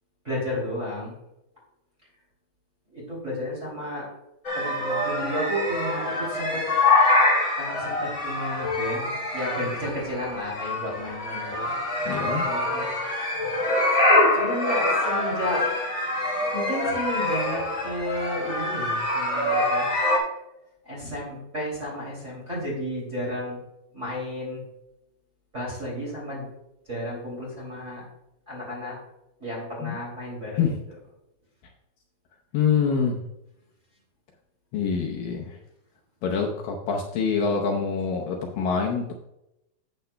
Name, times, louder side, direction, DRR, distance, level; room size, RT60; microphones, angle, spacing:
voice 1, 0.2-1.2 2.9-4.1 4.5-6.6 7.6-12.9 14.3-15.6 16.5-19.9 20.8-23.6 23.9-24.6 25.5-26.5 26.9-28.0 28.5-29.0 29.4-30.7, equal, 20° right, -5 dB, 2.3 m, -32 dB
sound 1, 4.4-20.2, left 2 dB, 25° left, 2.2 m, -25 dB
voice 2, 12.1-12.5 29.8-30.0 30.6-30.7 32.5-33.2 34.7-35.6 36.2-39.1, left 6 dB, 75° left, 1 dB, 2.3 m, -25 dB
11.5 x 8.1 x 2.2 m, 0.87 s
omnidirectional pair, 4.5 m